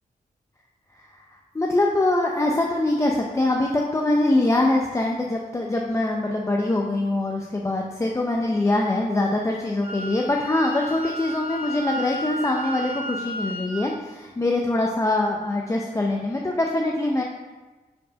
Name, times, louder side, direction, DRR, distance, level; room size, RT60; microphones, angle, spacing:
voice 1, 1.0-17.2, left 2 dB, 20° left, 0 dB, 0.6 m, -23 dB
Wind instrument woodwind instrument, 9.8-13.8, right 1 dB, 70° left, 1.6 m, -33 dB
5.6 x 4.4 x 5.1 m, 1.2 s
wide cardioid pair, 125°, 15 cm